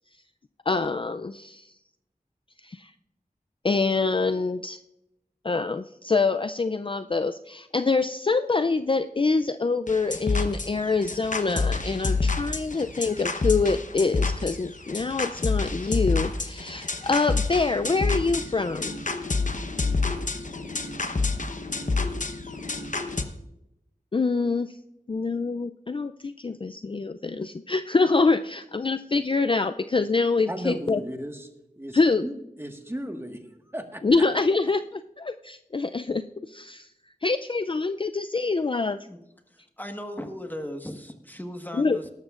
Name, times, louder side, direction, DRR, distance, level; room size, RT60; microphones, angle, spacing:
voice 1, 0.7-1.7 2.6-2.9 3.6-4.8 5.4-19.0 24.1-24.8 25.1-31.0 31.9-32.3 34.0-36.9 37.2-39.0 41.8-42.0, left 4 dB, 35° left, 10 dB, 0.4 m, -25 dB
sound 1, 9.9-23.2, left 3 dB, 60° left, 0.9 m, -28 dB
voice 2, 30.5-31.5 31.8-33.4 33.7-34.0, equal, 15° right, 4 dB, 1.5 m, -35 dB
voice 3, 39.5-42.1, equal, 10° left, 5 dB, 1.4 m, -37 dB
17.5 x 12.5 x 2.5 m, 0.87 s
wide cardioid pair, 50°, 15 cm